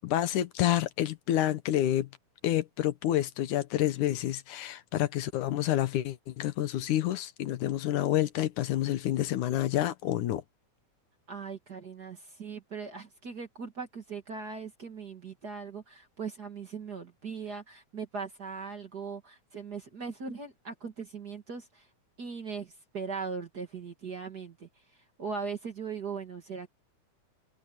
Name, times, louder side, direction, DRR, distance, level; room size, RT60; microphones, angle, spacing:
voice 1, 0.0-2.1 2.4-10.4, left 13 dB, 75° left, 2.5 m, -28 dB
voice 2, 11.3-21.9 22.2-24.7 25.2-26.7, right 5 dB, 35° right, 1.9 m, -39 dB
omnidirectional pair, 3.6 m